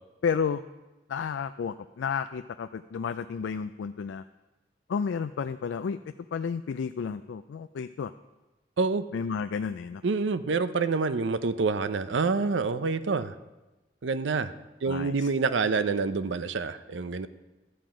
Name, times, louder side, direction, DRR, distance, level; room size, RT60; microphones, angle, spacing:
voice 1, 0.2-0.6 1.1-4.2 4.9-6.0 6.3-8.1 9.1-10.0 14.9-15.3, left 6 dB, 90° left, 10 dB, 0.3 m, -31 dB
voice 2, 10.0-13.3 14.0-14.5 14.8-17.3, right 4 dB, 90° right, 13 dB, 0.6 m, -27 dB
12.5 x 7.6 x 5.0 m, 1.1 s
head